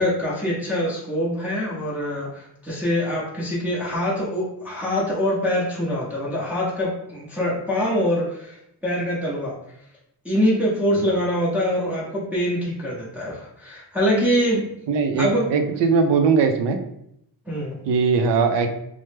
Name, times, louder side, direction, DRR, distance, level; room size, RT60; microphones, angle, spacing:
voice 1, 0.0-9.5 10.2-14.7 15.2-15.4 17.5-17.8, equal, 5° right, -7 dB, 0.6 m, -24 dB
voice 2, 14.9-16.8 17.9-18.7, right 5 dB, 85° right, 6 dB, 0.5 m, -20 dB
3.2 x 2.0 x 3.1 m, 0.76 s
wide cardioid pair, 150°, 41 cm